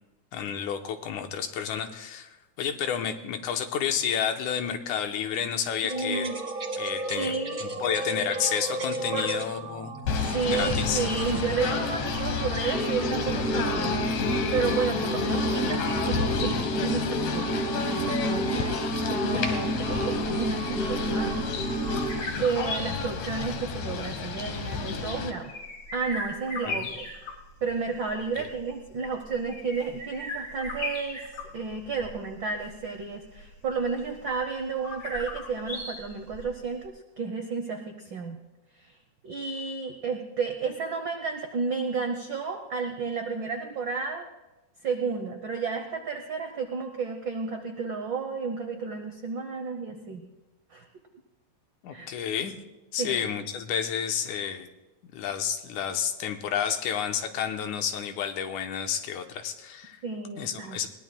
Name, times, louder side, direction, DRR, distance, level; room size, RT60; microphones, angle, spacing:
voice 1, 0.3-6.3 6.8-7.3 7.6-9.9 10.5-11.1 26.7-26.9 28.4-28.5 51.8-52.5 52.9-54.7 55.0-60.0 60.4-60.9, left 8 dB, 90° left, 6 dB, 2.4 m, -30 dB
voice 2, 5.8-6.4 7.2-7.6 9.1-9.3 10.1-14.0 14.5-18.8 19.1-21.3 22.4-25.5 25.9-27.1 27.6-31.2 31.5-38.4 39.2-44.3 44.8-50.2 50.7-50.9 51.9-52.1 53.0-53.3 60.0-60.9, right 5 dB, 70° right, 4 dB, 1.1 m, -32 dB
sound 1, 5.9-22.2, right 2 dB, 35° right, 1.6 m, -31 dB
Singing / Bird, 10.0-25.3, left 5 dB, 70° left, 2.4 m, -30 dB
sound 2, 19.6-36.9, left 2 dB, 45° left, 2.6 m, -39 dB
21.5 x 18.0 x 2.2 m, 1.0 s
omnidirectional pair, 3.4 m